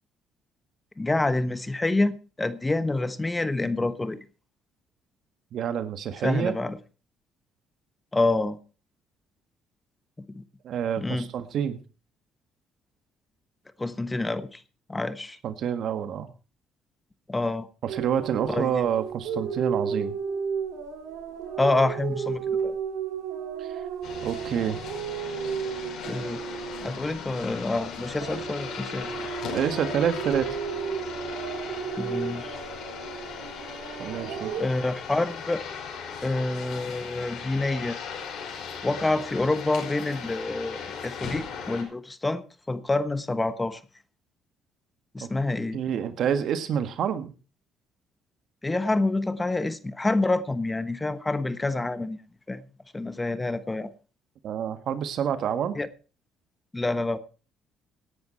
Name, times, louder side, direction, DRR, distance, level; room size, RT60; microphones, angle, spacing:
voice 1, 1.0-4.2 6.2-6.8 8.1-8.6 10.3-10.4 11.0-11.3 13.8-14.6 14.9-15.4 17.3-17.7 18.5-18.7 21.6-22.7 26.1-26.4 26.8-29.1 32.0-32.6 34.6-35.6 36.2-38.0 38.8-42.4 42.7-43.8 45.1-45.8 48.6-52.2 52.5-52.6 52.9-53.9 55.7-55.9 56.7-57.2, left 2 dB, 15° left, 1.2 m, -27 dB
voice 2, 5.5-6.5 10.6-11.8 15.4-16.3 17.8-20.1 23.6-23.8 24.2-24.8 29.5-30.5 34.0-34.6 45.2-45.3 45.7-47.3 54.4-55.8, right 8 dB, 65° right, 1.6 m, -28 dB
sound 1, 17.9-27.7 28.0-34.6, right 7 dB, 85° right, 3.7 m, -33 dB
sound 2, 24.0-41.8, left 6 dB, 70° left, 5.4 m, -38 dB
17.5 x 10.5 x 4.4 m
cardioid pair, 90°, 0 cm